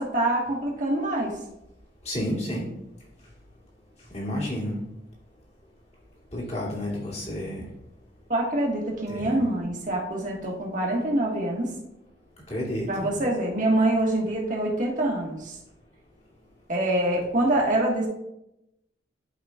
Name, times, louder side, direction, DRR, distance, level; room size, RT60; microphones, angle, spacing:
voice 1, 0.0-1.3 8.3-11.7 12.9-15.5 16.7-18.1, right 1 dB, 45° right, -1 dB, 1.6 m, -25 dB
voice 2, 2.0-2.7 4.1-4.8 6.3-7.6 9.1-9.4 12.5-13.1, equal, 40° left, -5 dB, 2.5 m, -30 dB
12.0 x 5.0 x 2.4 m, 0.87 s
head